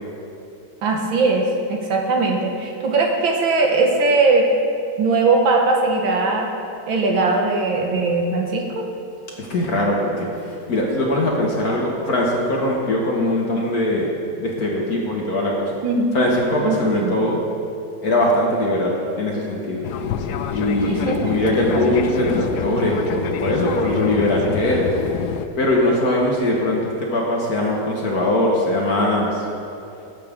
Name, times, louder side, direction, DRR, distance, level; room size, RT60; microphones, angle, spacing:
voice 1, 0.8-4.5 5.0-6.5 6.9-8.8 15.8-16.4 16.6-17.2 20.9-21.4 21.7-21.9, right 3 dB, 85° right, 1 dB, 2.1 m, -20 dB
voice 2, 9.4-14.1 14.4-15.7 16.1-17.4 18.0-19.8 20.5-24.9 25.6-29.4, left 1 dB, 55° left, -2 dB, 1.8 m, -21 dB
Fixed-wing aircraft airplane, 19.8-25.5, left 7 dB, 70° left, 1.0 m, -27 dB
18.5 x 7.6 x 3.7 m, 2.7 s
omnidirectional pair, 2.1 m